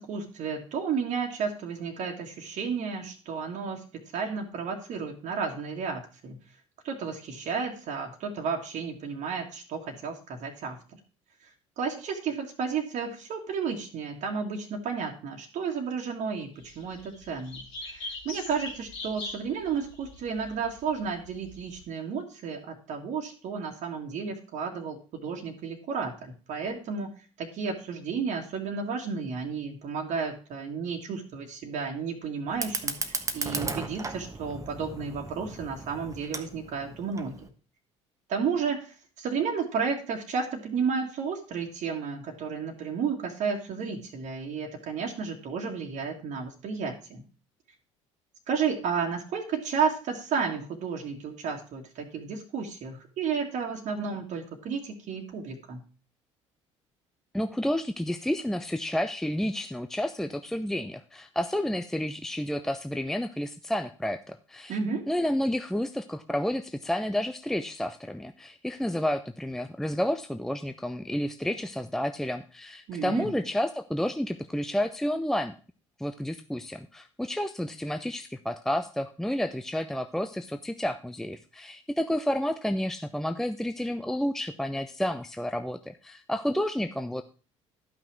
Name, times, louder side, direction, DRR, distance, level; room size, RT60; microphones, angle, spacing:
voice 1, 0.0-3.8 4.1-6.4 6.8-11.0 11.4-27.1 27.4-37.5 38.3-47.2 48.5-55.8 64.7-65.0 72.9-73.3, right 5 dB, 50° right, 2 dB, 1.8 m, -32 dB
sound 1, 16.6-21.8, left 2 dB, 75° left, 3.9 m, -42 dB
Fire, 32.5-37.5, right 3 dB, 20° right, 1.2 m, -36 dB
voice 2, 57.3-64.8 65.1-75.5 76.0-87.2, left 1 dB, ahead, 8 dB, 0.6 m, -30 dB
12.5 x 6.0 x 4.4 m, 0.37 s
figure-of-eight pair, 55°, 16 cm